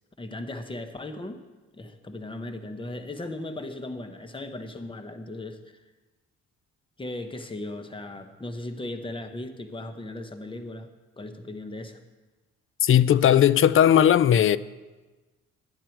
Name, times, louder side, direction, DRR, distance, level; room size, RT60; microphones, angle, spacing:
voice 1, 0.2-1.4 1.7-5.8 7.0-12.0, left 2 dB, 15° left, 1.1 m, -37 dB
voice 2, 12.8-14.6, left 10 dB, 45° left, 0.4 m, -18 dB
12.5 x 10.0 x 4.6 m
cardioid pair, 90°, 30 cm